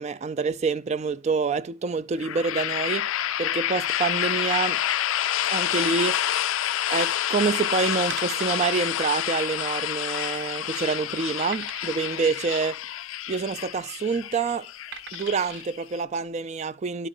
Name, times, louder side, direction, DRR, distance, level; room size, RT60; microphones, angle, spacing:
voice 1, 0.0-3.1 3.4-4.8 5.4-6.2 6.9-12.8 13.3-14.7 15.1-17.1, right 4 dB, 30° right, 0.3 m, -27 dB
sound 1, 2.2-16.0, left 12 dB, 70° left, 0.4 m, -28 dB
sound 2, 8.1-8.8 9.2-9.3 9.6-9.7 10.3-10.7 11.5-12.2 13.5-13.9 14.9-15.7 16.3-16.4, right 6 dB, 55° right, 0.7 m, -41 dB
11.0 x 5.0 x 3.7 m
head